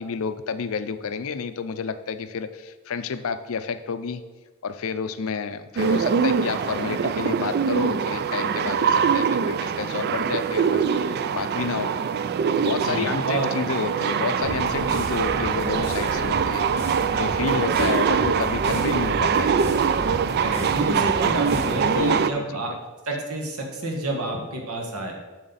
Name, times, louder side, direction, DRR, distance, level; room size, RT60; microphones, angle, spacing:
voice 1, 0.0-4.2 4.6-11.9 12.6-16.7 17.1-19.5 21.8-22.2 24.1-24.2, left 5 dB, 65° left, 10 dB, 0.5 m, -30 dB
sound 1, 5.8-22.3, right 6 dB, 45° right, 0.3 m, -23 dB
voice 2, 12.6-13.5 17.4-18.0 20.4-22.7 23.0-25.1, right 2 dB, 75° right, 1 dB, 1.6 m, -29 dB
sound 2, 14.4-22.1, equal, 30° right, 2.3 m, -34 dB
7.6 x 6.4 x 4.1 m, 1.2 s
head